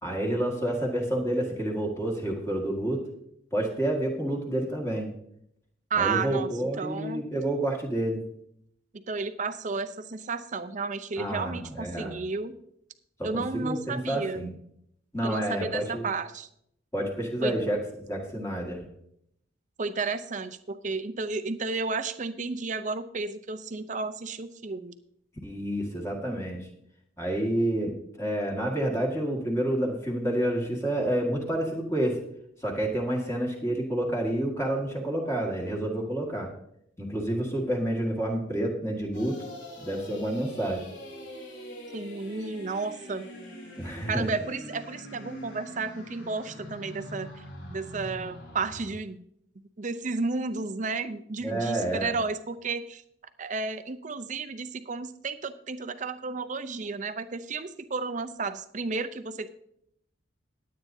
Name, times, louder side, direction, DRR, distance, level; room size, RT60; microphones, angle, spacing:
voice 1, 0.0-3.0 3.5-5.1 6.0-8.2 11.2-12.1 13.2-14.5 15.1-16.0 16.9-17.8 18.1-18.8 25.4-26.7 27.2-32.2 32.6-36.5 37.0-39.4 39.8-40.8 43.8-44.3 51.4-52.1, right 1 dB, 15° left, -1 dB, 1.8 m, -29 dB
voice 2, 5.9-7.2 9.1-12.6 13.2-14.5 15.2-16.5 17.4-17.6 19.8-24.9 41.9-43.3 44.1-47.4 47.7-49.2 49.8-53.0 53.4-59.5, right 4 dB, 40° right, 11 dB, 0.6 m, -32 dB
sound 1, 39.1-48.9, equal, 75° left, 4.3 m, -43 dB
21.0 x 8.5 x 2.7 m, 0.73 s
head